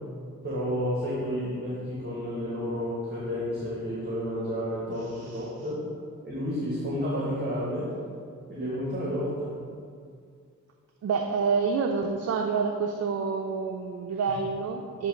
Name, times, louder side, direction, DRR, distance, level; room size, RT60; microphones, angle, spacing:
voice 1, 0.4-5.8 6.2-7.9 8.5-9.5, equal, 35° right, -7 dB, 1.5 m, -31 dB
voice 2, 4.9-5.5 11.0-15.1, right 5 dB, 55° right, 3 dB, 0.5 m, -28 dB
7.7 x 3.0 x 5.0 m, 2.2 s
cardioid pair, 90°, 30 cm